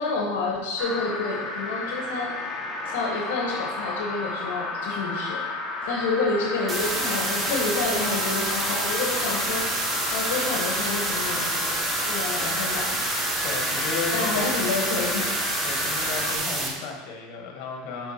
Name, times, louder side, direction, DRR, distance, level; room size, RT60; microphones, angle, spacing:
voice 1, 0.0-2.3 2.8-5.4 5.8-12.9 14.1-15.4, left 3 dB, 90° left, -1 dB, 1.3 m, -29 dB
sound 1, 0.8-16.4, left 2 dB, 20° left, 1.3 m, -32 dB
sound 2, 6.7-16.7, right 2 dB, 20° right, 1.4 m, -28 dB
voice 2, 13.4-14.6 15.6-18.1, left 4 dB, 60° left, 1 dB, 1.9 m, -34 dB
6.8 x 5.7 x 4.4 m, 1.2 s
supercardioid pair, 135°, 0 cm